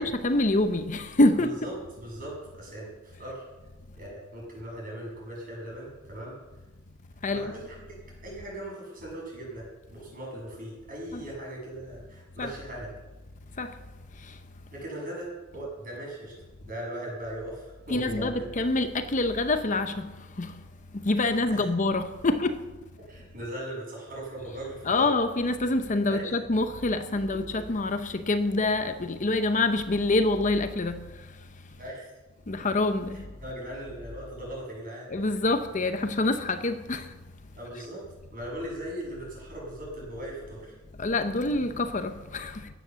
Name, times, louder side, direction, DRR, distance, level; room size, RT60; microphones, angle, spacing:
voice 1, 0.0-1.5 7.2-7.5 11.1-11.2 12.4-12.5 13.6-13.7 17.9-20.1 20.4-20.6 21.0-22.6 24.9-31.0 32.5-33.2 35.1-37.1 41.0-42.6, left 2 dB, 40° left, 0.8 m, -26 dB
voice 2, 1.4-1.7 2.0-3.4 4.0-6.4 7.3-7.7 8.2-12.9 14.7-16.3 16.6-18.5 21.3-21.7 23.0-25.1 26.0-26.3 27.3-27.6 31.8-32.1 33.4-35.3 37.5-38.0 38.3-40.7, right 1 dB, 45° right, 6.8 m, -39 dB
15.0 x 10.0 x 6.9 m
head